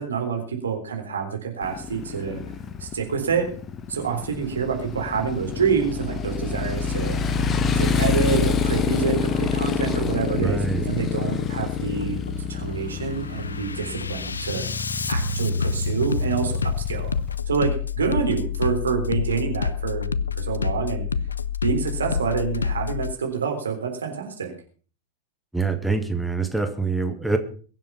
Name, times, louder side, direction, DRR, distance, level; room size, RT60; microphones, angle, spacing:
voice 1, 0.0-2.4 2.8-3.5 3.9-7.2 7.7-12.2 12.5-14.7 15.1-17.1 17.5-21.1 21.6-24.5, right 6 dB, 70° right, 3 dB, 3.9 m, -27 dB
Motorcycle, 1.6-17.4, left 6 dB, 25° left, 1.1 m, -27 dB
Bass drum, 7.3-7.5 8.0-8.5 9.3-9.5 10.0-10.5 11.3-11.5 12.0-12.5 12.9-23.1, left 5 dB, 75° left, 0.6 m, -28 dB
voice 2, 10.4-10.9 25.5-27.4, right 4 dB, ahead, 6 dB, 1.7 m, -25 dB
22.5 x 7.6 x 5.8 m, 0.42 s
figure-of-eight pair, 90°, 0 cm